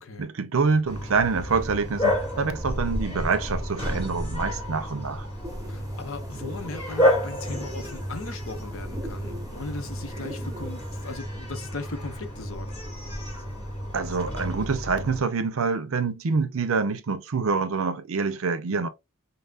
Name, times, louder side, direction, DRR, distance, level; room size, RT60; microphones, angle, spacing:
voice 1, 0.2-5.3 13.9-18.9, right 4 dB, 75° right, 0.6 m, -26 dB
Bark, 0.8-15.2, left 1 dB, 25° left, 2.0 m, -30 dB
sound 1, 5.4-11.1, equal, 15° right, 0.5 m, -43 dB
voice 2, 5.7-12.7, left 3 dB, 65° left, 0.7 m, -38 dB
5.4 x 2.0 x 2.4 m
head